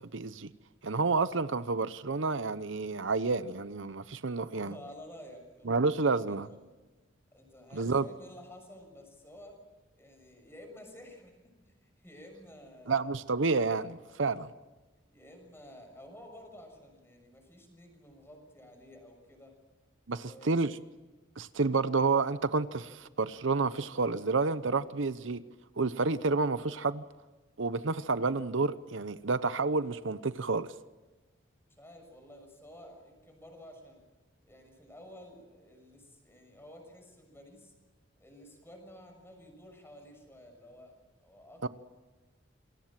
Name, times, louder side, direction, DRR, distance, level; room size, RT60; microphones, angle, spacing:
voice 1, 0.1-0.5 0.8-4.8 5.7-6.5 7.7-8.0 12.9-14.5 20.1-20.7 21.4-25.4 25.8-27.0 27.6-30.7 41.6-41.7, right 4 dB, 75° right, 14 dB, 0.8 m, -29 dB
voice 2, 4.4-5.8 6.1-6.7 7.3-9.6 9.9-13.2 15.1-19.6 20.1-20.8 31.6-34.0 34.5-37.7 38.2-41.7, left 1 dB, 10° left, 5 dB, 6.5 m, -52 dB
28.0 x 22.5 x 7.6 m, 1.2 s
head